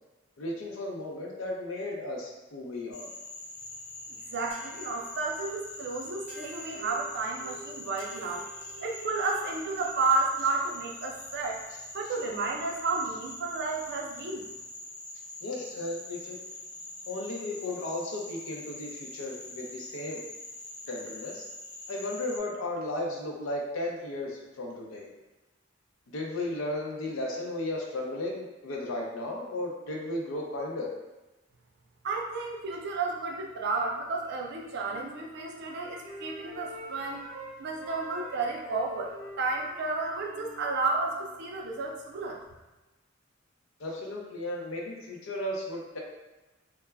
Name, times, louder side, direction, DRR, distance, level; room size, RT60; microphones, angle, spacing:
voice 1, 0.4-3.1 15.4-16.4 17.1-20.2 20.9-21.4 21.9-25.1 26.1-30.9 43.8-46.0, left 1 dB, 85° left, -1 dB, 0.5 m, -35 dB
Frog, 2.9-22.4, left 2 dB, 20° left, 0.4 m, -44 dB
voice 2, 4.1-11.6 11.9-14.5 32.0-37.3 37.6-42.4, right 3 dB, 55° right, 1 dB, 0.4 m, -32 dB
sound 1, 4.5-9.3, right 1 dB, 50° left, 0.9 m, -48 dB
Wind instrument woodwind instrument, 34.8-37.5 37.8-41.4, equal, 5° left, 0.8 m, -46 dB
2.2 x 2.1 x 3.3 m, 1.1 s
head